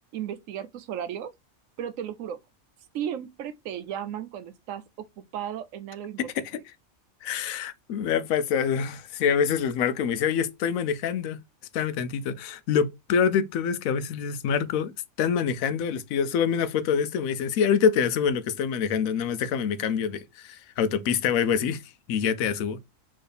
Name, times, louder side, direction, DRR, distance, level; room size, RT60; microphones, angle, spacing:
voice 1, 0.1-1.3 1.8-2.4 2.9-4.8 5.2-6.3, right 9 dB, 75° right, 0.9 m, -34 dB
voice 2, 7.2-11.4 11.7-14.9 15.2-21.8 22.1-22.8, left 7 dB, 80° left, 1.0 m, -25 dB
4.5 x 3.2 x 3.2 m
omnidirectional pair, 1.4 m